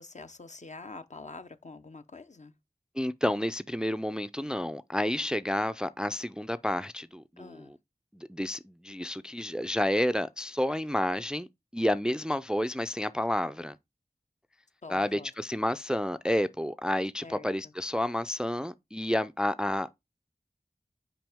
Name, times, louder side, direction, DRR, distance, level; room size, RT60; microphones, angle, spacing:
voice 1, 0.0-2.5 5.2-5.3 7.4-7.7 14.8-15.3 17.2-17.7, left 3 dB, 50° left, 0.6 m, -46 dB
voice 2, 3.0-7.7 8.1-11.5 11.7-13.8 14.9-19.9, left 1 dB, 5° right, 0.3 m, -30 dB
6.0 x 4.9 x 3.4 m
wide cardioid pair, 40°, 15 cm